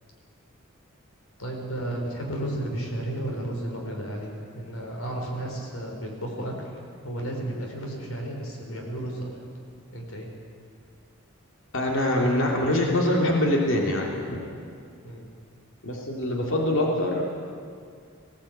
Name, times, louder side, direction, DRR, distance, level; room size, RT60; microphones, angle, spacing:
voice 1, 1.4-6.6 7.0-9.3 9.9-10.3 15.0-15.3, right 1 dB, 85° left, 1 dB, 4.6 m, -33 dB
voice 2, 11.7-14.4 15.8-17.2, left 1 dB, 65° left, -1 dB, 3.2 m, -24 dB
19.0 x 17.0 x 8.9 m, 2.3 s
head